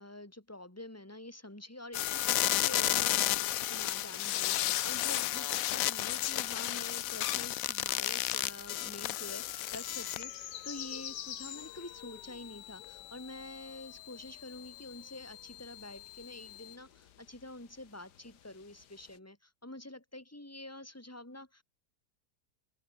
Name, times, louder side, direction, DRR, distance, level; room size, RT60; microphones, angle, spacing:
voice 1, 0.0-21.6, left 1 dB, 10° left, 3.4 m, -47 dB
sound 1, 1.9-10.4 10.7-16.7, left 14 dB, 70° left, 0.9 m, -34 dB
sound 2, 9.7-19.2, left 10 dB, 85° left, 1.6 m, -49 dB
open air
omnidirectional pair, 1.8 m